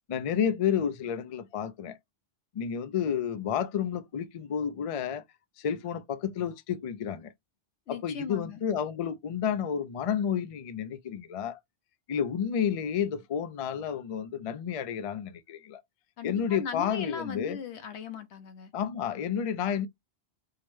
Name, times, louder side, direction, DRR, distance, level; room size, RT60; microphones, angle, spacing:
voice 1, 0.1-2.0 2.5-5.2 5.6-7.3 7.9-11.6 12.1-15.8 16.2-17.6 18.7-19.9, left 8 dB, 60° left, 0.3 m, -30 dB
voice 2, 7.9-8.6 16.2-18.7, left 6 dB, 80° left, 0.9 m, -39 dB
4.7 x 2.0 x 3.1 m
omnidirectional pair, 1.1 m